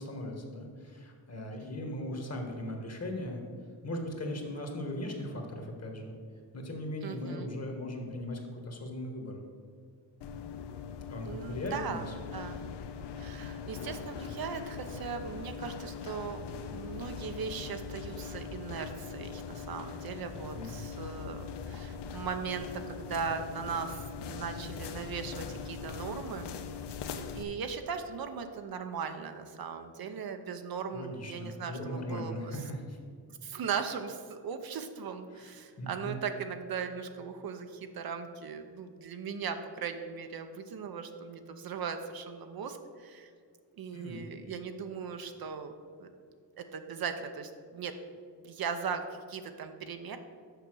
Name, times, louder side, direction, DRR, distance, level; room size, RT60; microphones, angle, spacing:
voice 1, 0.0-3.4 3.8-6.1 6.5-9.4 11.1-12.1 20.5-20.8 30.9-33.0 35.3-35.5 35.8-36.2 43.9-44.3, left 1 dB, 35° left, 2 dB, 1.6 m, -38 dB
voice 2, 7.0-7.5 11.3-12.6 13.2-26.5 27.0-32.6 33.4-43.3 43.8-45.7 46.0-46.1 46.6-48.0 48.4-50.2, right 6 dB, 55° right, 7 dB, 0.7 m, -38 dB
sound 1, 10.2-27.4, left 6 dB, 65° left, 0.7 m, -41 dB
6.8 x 5.8 x 6.2 m, 2.1 s
cardioid pair, 95°, 44 cm